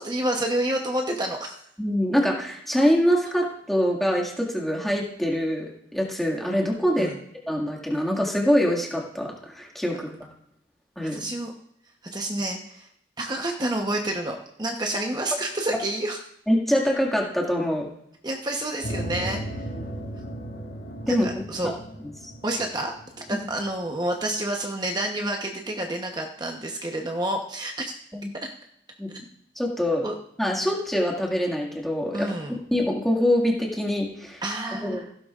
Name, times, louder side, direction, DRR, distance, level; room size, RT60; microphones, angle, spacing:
voice 1, 0.0-1.6 7.0-7.2 9.9-10.0 11.1-11.5 12.1-12.9 13.2-16.2 18.2-19.7 21.1-21.7 22.4-22.9 23.3-27.9 28.4-28.5 30.0-30.1 32.1-32.6 34.4-35.0, right 1 dB, 25° right, 2 dB, 0.9 m, -29 dB
voice 2, 1.8-7.1 7.5-10.1 11.0-11.2 16.5-17.9 21.1-21.3 21.6-21.7 22.2-22.3 28.1-28.3 29.0-29.3 29.6-30.1 30.4-34.4 34.8-35.0, equal, ahead, -3 dB, 2.0 m, -24 dB
sound 1, 18.8-23.7, right 1 dB, 80° left, 2.6 m, -36 dB
16.0 x 12.0 x 2.5 m, 0.74 s
head